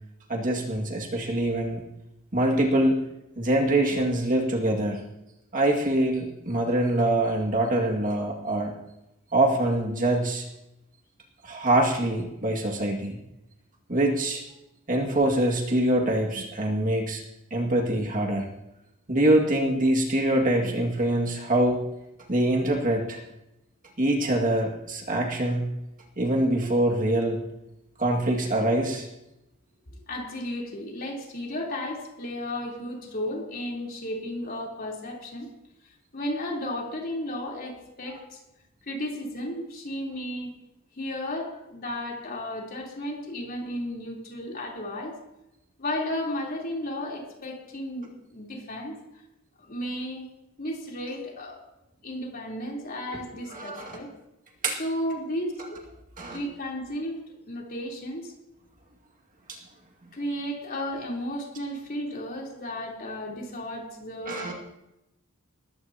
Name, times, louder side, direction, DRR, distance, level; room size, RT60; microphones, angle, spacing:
voice 1, 0.3-1.8 2.3-3.0 3.4-5.0 5.5-8.7 9.3-10.4 11.4-13.2 13.9-14.4 14.9-17.2 17.5-18.5 19.1-21.8 22.3-23.2 24.0-25.7 26.2-27.4 28.0-29.1 53.5-54.0 54.6-54.8 56.2-56.4 59.5-59.6 64.3-64.5, right 1 dB, 40° right, 0 dB, 2.2 m, -24 dB
voice 2, 29.9-35.5 36.1-38.4 38.8-40.5 41.0-45.2 45.8-49.2 49.6-50.3 50.6-51.6 52.0-54.1 54.8-55.8 56.3-57.2 57.5-58.3 60.1-64.5, left 1 dB, 45° left, -2 dB, 3.7 m, -34 dB
20.0 x 14.5 x 2.9 m, 0.89 s
head